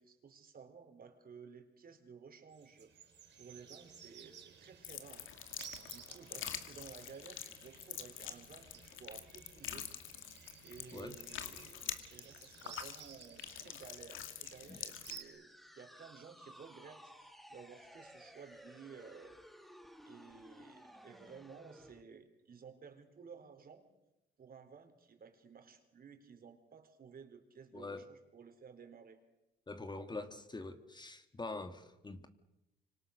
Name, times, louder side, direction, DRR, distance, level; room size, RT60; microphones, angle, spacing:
voice 1, 0.0-2.9 3.4-5.3 5.8-9.9 10.6-15.5 15.7-19.4 20.0-23.8 24.4-29.2, right 6 dB, 50° right, 4.1 m, -55 dB
sound 1, 2.5-15.2, right 8 dB, 65° right, 5.9 m, -56 dB
sound 2, 4.8-15.2, left 10 dB, 85° left, 2.3 m, -46 dB
sound 3, 14.6-22.0, equal, ahead, 2.1 m, -57 dB
voice 2, 27.7-28.1 29.7-32.3, left 3 dB, 20° left, 2.0 m, -44 dB
26.0 x 25.5 x 6.6 m
cardioid pair, 90°, 20 cm